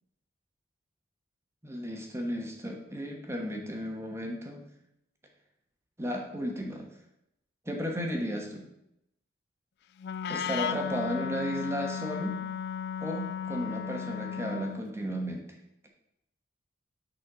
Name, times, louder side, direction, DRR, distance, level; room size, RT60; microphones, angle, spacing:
voice 1, 1.6-4.7 6.0-6.9 7.6-8.6 10.3-12.4 13.0-15.5, equal, 15° right, 1 dB, 1.1 m, -34 dB
Wind instrument woodwind instrument, 10.0-14.9, left 7 dB, 55° left, 0.3 m, -35 dB
9.5 x 4.3 x 6.0 m, 0.80 s
head